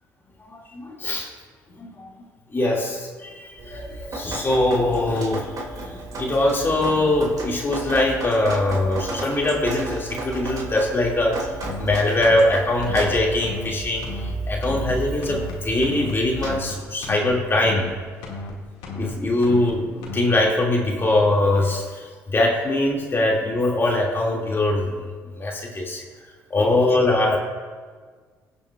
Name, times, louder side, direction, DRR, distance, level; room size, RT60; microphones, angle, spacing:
voice 1, 0.5-1.3 1.8-1.9 2.5-5.5 5.8-11.4 11.8-14.0 14.5-17.9 18.9-21.8 22.3-24.9 25.4-26.0 26.5-27.4, left 2 dB, 30° left, -2 dB, 2.0 m, -22 dB
Drip, 3.6-16.6, right 2 dB, 50° right, 2.2 m, -33 dB
sound 1, 11.6-11.9 12.2-12.5 12.8-13.1 13.4-13.7 14.0-14.3 14.6-14.9 15.2-15.5 15.8-16.1 16.4-16.7 17.0-17.3 17.6-17.9 18.2-18.5 18.8-19.1 19.4-19.7 20.0-20.3, left 3 dB, 80° left, 1.8 m, -34 dB
17.5 x 7.1 x 2.3 m, 1.5 s
hypercardioid pair, 60°, 8 cm